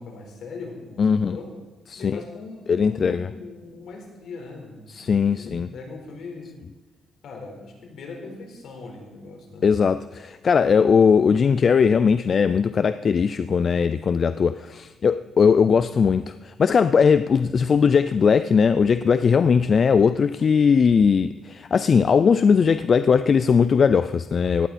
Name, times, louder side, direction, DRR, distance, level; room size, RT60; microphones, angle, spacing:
voice 1, 0.0-1.5 1.9-6.5 7.2-9.6, left 3 dB, 70° left, 4.4 m, -40 dB
voice 2, 1.0-1.4 1.9-2.2 2.7-3.3 4.9-5.7 9.6-24.7, left 6 dB, 45° left, 0.5 m, -19 dB
18.0 x 15.0 x 4.3 m
cardioid pair, 90°, 0 cm